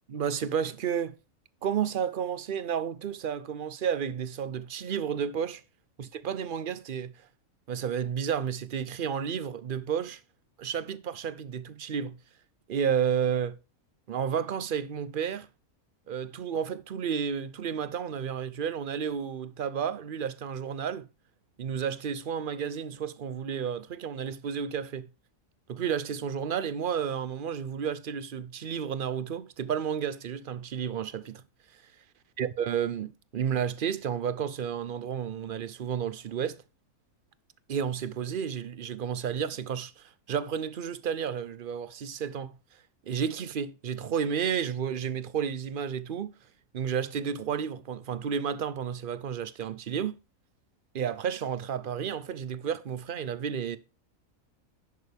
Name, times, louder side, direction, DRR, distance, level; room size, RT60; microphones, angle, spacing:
voice 1, 0.1-1.1 1.6-5.6 6.0-7.1 7.7-10.2 10.6-12.2 12.7-13.5 14.1-15.5 16.1-21.1 21.6-25.1 25.7-31.4 32.4-36.6 37.7-42.6 43.1-46.3 46.7-50.1 50.9-53.8, right 8 dB, 50° right, 0.7 m, -31 dB
11.0 x 6.6 x 3.4 m
omnidirectional pair, 1.4 m